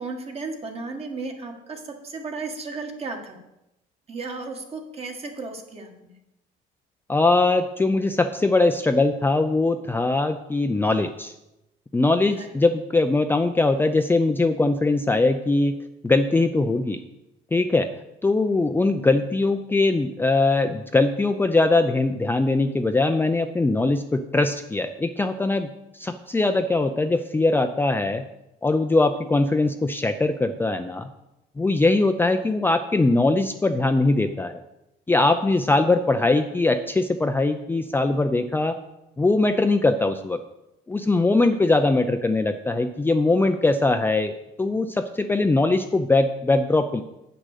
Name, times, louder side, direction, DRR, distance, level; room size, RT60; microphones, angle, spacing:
voice 1, 0.0-3.4 4.1-6.1 12.3-12.6, right 3 dB, 35° right, 3 dB, 1.7 m, -34 dB
voice 2, 7.1-11.3 11.9-15.7 16.0-17.0 17.5-17.9 18.2-28.2 28.6-31.1 31.6-34.6 35.1-38.8 39.2-40.4 40.9-47.0, left 2 dB, 10° left, 6 dB, 0.5 m, -21 dB
7.9 x 6.2 x 6.6 m, 0.90 s
cardioid pair, 110°, 17 cm